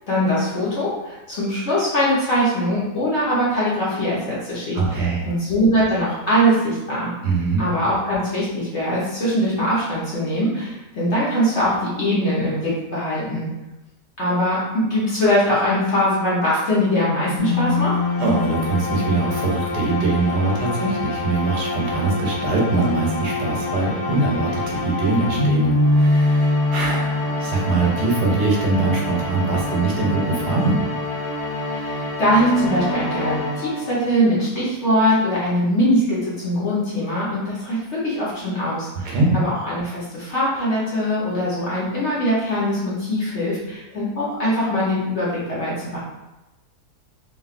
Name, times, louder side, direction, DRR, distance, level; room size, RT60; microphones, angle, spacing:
voice 1, 0.1-7.1 7.6-13.5 14.2-17.9 31.6-46.0, equal, 55° left, -8 dB, 0.9 m, -22 dB
voice 2, 4.7-5.3 7.2-7.6 18.2-30.8 39.0-39.4, right 3 dB, 80° right, -2 dB, 1.3 m, -22 dB
sound 1, 17.4-34.1, left 2 dB, 90° left, 1.4 m, -24 dB
3.0 x 2.6 x 2.4 m, 1.0 s
omnidirectional pair, 1.8 m